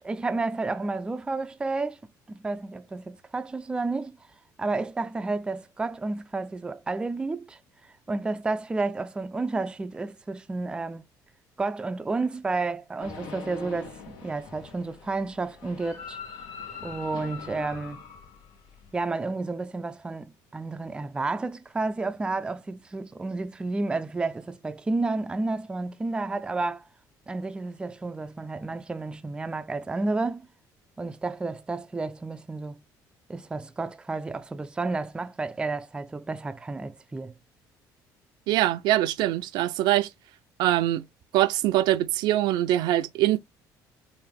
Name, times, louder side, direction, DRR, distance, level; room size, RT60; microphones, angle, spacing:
voice 1, 0.0-2.0 2.3-4.2 4.6-7.6 8.1-11.0 11.6-16.2 16.8-18.0 18.9-26.9 27.3-30.5 31.0-32.8 33.3-37.3, right 3 dB, 10° right, 0.3 m, -31 dB
sound 1, 13.0-19.0, left 5 dB, 85° left, 1.2 m, -42 dB
voice 2, 38.5-40.1 40.6-41.0 41.3-43.4, right 14 dB, 80° right, 0.5 m, -23 dB
4.9 x 2.5 x 3.4 m
cardioid pair, 120°, 7 cm